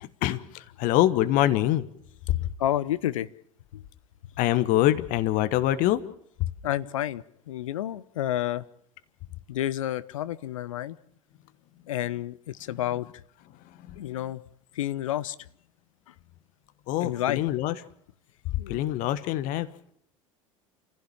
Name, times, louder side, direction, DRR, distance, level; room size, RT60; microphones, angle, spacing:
voice 1, 0.2-1.8 4.4-6.0 16.9-17.7 18.7-19.7, left 14 dB, 50° left, 14 dB, 1.3 m, -24 dB
voice 2, 2.3-3.3 3.7-3.8 6.6-8.6 9.5-11.0 11.9-13.1 14.0-14.4 14.7-15.4 16.1-16.2 17.0-17.4 18.6-18.8, left 12 dB, 70° left, 16 dB, 0.8 m, -30 dB
28.5 x 15.5 x 7.3 m, 0.66 s
figure-of-eight pair, 75°, 17 cm